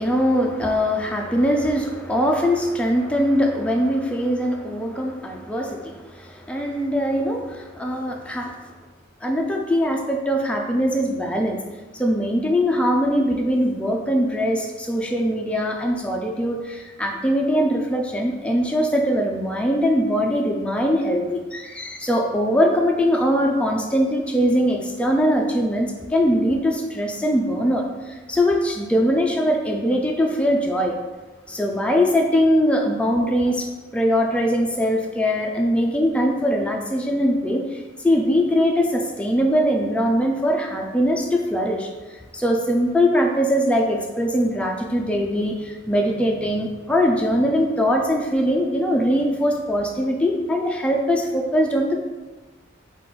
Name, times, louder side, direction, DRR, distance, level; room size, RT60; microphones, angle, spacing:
voice 1, 0.0-8.6 9.2-11.6 11.9-30.9 31.5-33.7 33.9-41.9 42.3-51.9, equal, 5° left, 1 dB, 0.4 m, -21 dB
5.8 x 2.5 x 3.7 m, 1.2 s
head